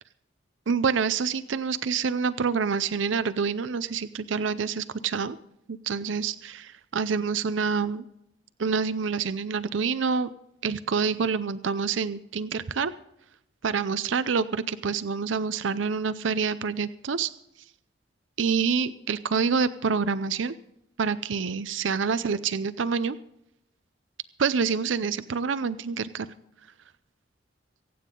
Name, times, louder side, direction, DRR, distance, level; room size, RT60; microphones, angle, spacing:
voice 1, 0.7-5.4 5.7-8.0 8.6-10.3 10.6-12.9 13.6-17.3 18.4-20.5 21.0-23.2 24.4-26.3, right 5 dB, 80° right, 13 dB, 0.5 m, -27 dB
25.0 x 9.4 x 3.8 m, 0.79 s
head